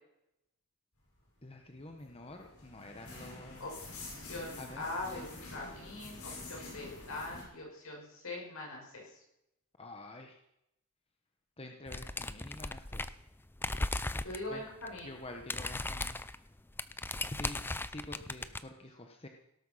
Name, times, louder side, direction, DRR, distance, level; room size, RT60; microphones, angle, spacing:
voice 1, 1.4-3.7 4.5-4.8 9.8-10.4 11.6-13.1 14.5-14.6 15.0-16.2 17.3-17.6 17.8-19.3, left 1 dB, 25° left, 3 dB, 1.2 m, -47 dB
sound 1, 1.5-7.4, left 2 dB, 85° left, 5.8 m, -47 dB
voice 2, 3.6-9.0 14.2-15.1 18.1-18.2, left 2 dB, 70° left, -2 dB, 7.0 m, -42 dB
sound 2, 11.9-13.3 13.6-14.4 14.8-15.0 15.3-18.6, left 2 dB, 10° left, 0.5 m, -37 dB
17.5 x 12.5 x 5.7 m, 0.82 s
head